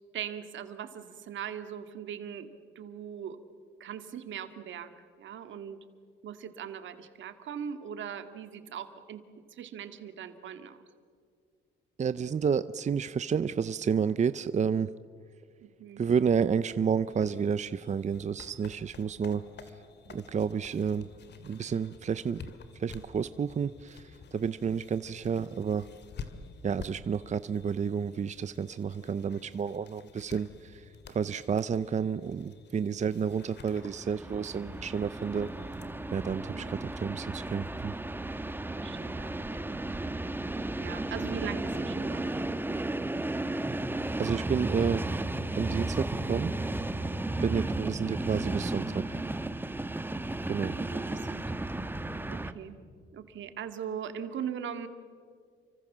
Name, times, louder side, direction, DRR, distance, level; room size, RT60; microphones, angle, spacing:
voice 1, 0.1-2.5 2.8-3.4 3.8-4.9 5.2-5.8 6.2-9.2 9.5-10.9 15.6-16.0 36.5-36.8 38.8-39.8 40.8-42.2 50.8-51.7 52.3-52.8 53.1-54.9, right 8 dB, 70° right, 8 dB, 2.2 m, -40 dB
voice 2, 12.0-14.9 16.0-19.4 20.1-21.1 21.4-22.4 22.8-25.9 26.6-35.5 36.1-37.9 44.2-45.0 45.6-46.5 47.4-49.0 50.5-50.8, right 6 dB, 35° right, 14 dB, 0.7 m, -30 dB
sound 1, 17.1-35.8, left 5 dB, 60° left, 2.5 m, -50 dB
Train, 33.6-52.5, right 2 dB, 10° right, 1.3 m, -34 dB
30.0 x 25.0 x 7.4 m, 2.1 s
cardioid pair, 90°, 20 cm